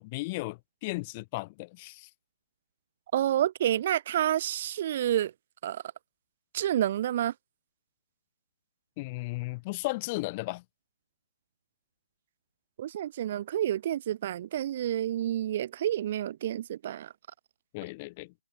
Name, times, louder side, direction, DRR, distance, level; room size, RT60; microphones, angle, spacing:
voice 1, 0.0-2.1 9.0-10.6 17.7-18.3, left 24 dB, 25° left, 3.9 m, -35 dB
voice 2, 3.1-5.3 5.6-5.8 6.5-7.3 12.8-17.1, right 11 dB, 35° right, 0.6 m, -29 dB
hypercardioid pair, 155°, 0 cm